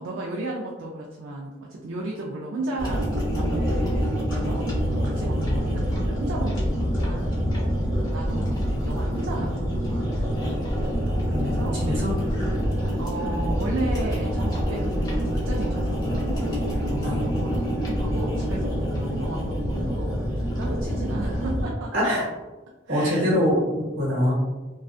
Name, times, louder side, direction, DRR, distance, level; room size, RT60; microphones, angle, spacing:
voice 1, 0.0-4.7 5.0-7.7 8.1-10.5 11.4-11.8 13.0-21.9 22.9-23.2, right 2 dB, 80° right, -2 dB, 0.4 m, -34 dB
sound 1, 2.8-21.6, equal, 20° left, 0.9 m, -26 dB
voice 2, 11.3-12.1 17.0-17.4 21.9-22.3 22.9-24.3, equal, 60° right, -4 dB, 1.0 m, -24 dB
2.4 x 2.3 x 2.3 m, 1.2 s
head